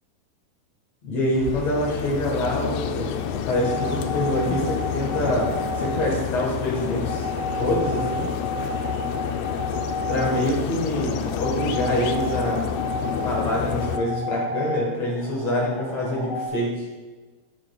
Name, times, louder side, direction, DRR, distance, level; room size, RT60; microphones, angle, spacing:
voice 1, 1.0-7.3 7.6-8.3 10.1-12.7 13.2-16.8, left 1 dB, 65° left, -3 dB, 1.7 m, -25 dB
sound 1, 1.3-14.0, left 9 dB, 85° left, 2.4 m, -29 dB
sound 2, 3.5-16.5, equal, ahead, 1.3 m, -32 dB
10.0 x 9.5 x 2.3 m, 1.3 s
omnidirectional pair, 5.1 m